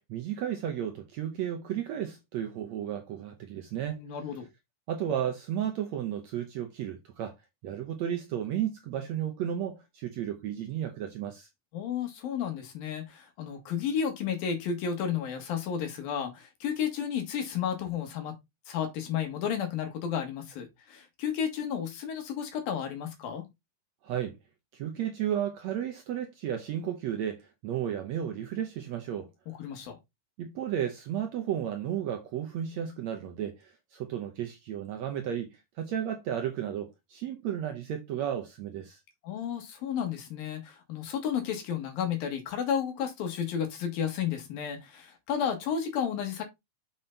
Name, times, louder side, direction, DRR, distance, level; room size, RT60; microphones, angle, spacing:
voice 1, 0.1-4.0 4.9-7.4 7.6-11.5 24.0-24.3 24.7-29.3 30.4-39.0, right 10 dB, 70° right, 1.7 m, -33 dB
voice 2, 3.9-4.5 11.7-18.4 18.7-23.4 29.5-30.0 39.2-46.4, left 8 dB, 80° left, 3.7 m, -32 dB
7.4 x 5.7 x 3.9 m
omnidirectional pair, 4.1 m